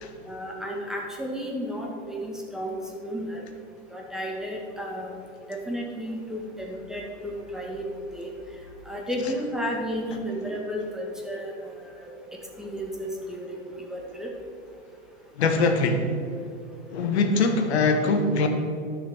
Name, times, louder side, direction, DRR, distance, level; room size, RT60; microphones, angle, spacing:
voice 1, 0.3-2.7 3.0-3.4 3.9-5.1 5.5-8.3 8.9-12.1 12.6-14.3, equal, ahead, -1 dB, 2.0 m, -33 dB
voice 2, 15.4-16.1 16.9-18.5, left 3 dB, 70° left, 5 dB, 1.4 m, -22 dB
12.0 x 6.6 x 6.3 m, 2.5 s
hypercardioid pair, 105°, 33 cm